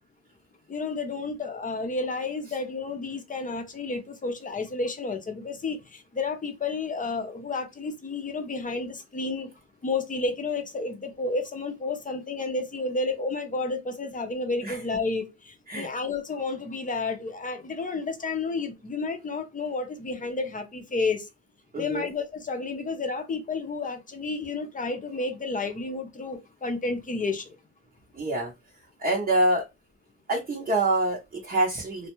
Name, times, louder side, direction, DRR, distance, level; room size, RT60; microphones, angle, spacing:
voice 1, 0.7-9.5 9.8-21.3 21.8-27.6, left 3 dB, 25° left, 0.7 m, -31 dB
voice 2, 21.7-22.1 28.2-28.5 29.0-29.6 30.3-32.1, right 1 dB, 25° right, 0.7 m, -25 dB
2.3 x 2.1 x 3.0 m
cardioid pair, 90°, 30 cm